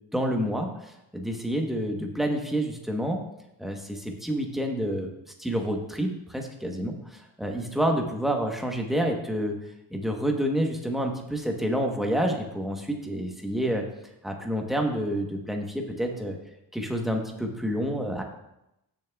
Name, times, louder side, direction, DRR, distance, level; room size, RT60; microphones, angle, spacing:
voice 1, 0.1-3.2 3.6-5.1 5.4-9.6 9.9-13.8 14.2-16.4 16.7-18.2, equal, ahead, 1 dB, 1.0 m, -28 dB
15.5 x 7.2 x 2.3 m, 0.87 s
cardioid pair, 160°, 37 cm